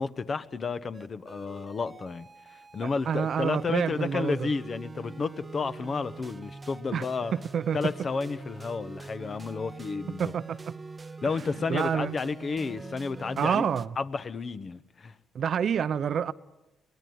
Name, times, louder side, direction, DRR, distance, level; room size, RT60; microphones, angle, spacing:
voice 1, 0.0-7.3 7.7-10.3 11.2-13.6 14.0-15.1, left 4 dB, 40° left, 1.1 m, -32 dB
sound 1, 0.9-13.9, right 3 dB, 25° right, 0.8 m, -44 dB
voice 2, 2.8-4.5 6.9-7.0 7.5-7.8 10.2-10.7 11.7-12.2 13.4-13.9 15.3-16.3, right 8 dB, 60° right, 0.8 m, -28 dB
23.5 x 18.5 x 9.4 m
cardioid pair, 90°, 0 cm